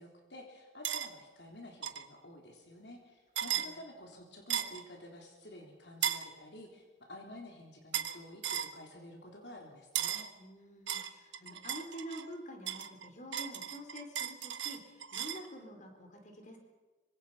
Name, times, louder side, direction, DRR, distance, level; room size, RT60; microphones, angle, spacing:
voice 1, 0.0-10.3, left 1 dB, 65° left, 1 dB, 3.5 m, -51 dB
sound 1, 0.8-1.1 1.8-2.1 3.4-3.7 4.5-4.8 6.0-6.3 7.9-8.2 8.4-8.7 10.0-10.3 10.9-12.3 12.7-15.5, right 10 dB, 85° right, 1.4 m, -36 dB
voice 2, 10.4-16.6, equal, 45° left, 4 dB, 4.1 m, -48 dB
26.0 x 25.0 x 5.7 m, 1.3 s
head